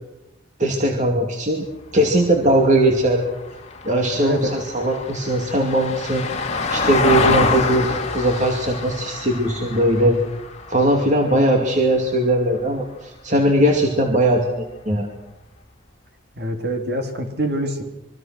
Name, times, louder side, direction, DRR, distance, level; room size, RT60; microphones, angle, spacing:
voice 1, 0.6-1.7 1.9-3.3 3.8-6.2 6.7-10.2 10.7-15.1, right 1 dB, 40° right, 2 dB, 2.6 m, -19 dB
Vehicle, 1.8-12.3 14.6-14.7, left 3 dB, 35° left, 2.4 m, -27 dB
voice 2, 16.4-17.8, equal, 55° right, 4 dB, 3.6 m, -25 dB
26.0 x 23.5 x 6.3 m, 0.91 s
head